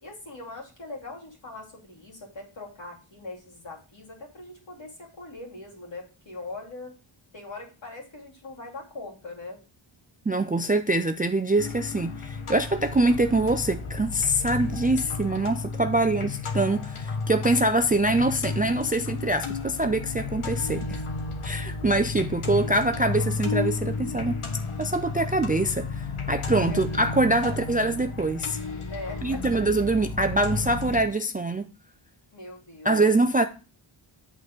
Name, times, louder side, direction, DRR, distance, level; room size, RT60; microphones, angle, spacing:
voice 1, 0.0-6.9 7.3-9.6 26.7-26.8 27.5-27.6 28.9-29.4 29.8-29.9 32.3-33.0, left 2 dB, 60° left, 2.7 m, -41 dB
voice 2, 10.3-21.0 21.4-24.4 24.8-28.6 29.2-31.7 32.8-33.5, right 2 dB, 20° right, 0.3 m, -24 dB
sound 1, 11.6-31.0, left 3 dB, 85° left, 1.4 m, -32 dB
8.4 x 4.0 x 4.9 m
wide cardioid pair, 165°, 49 cm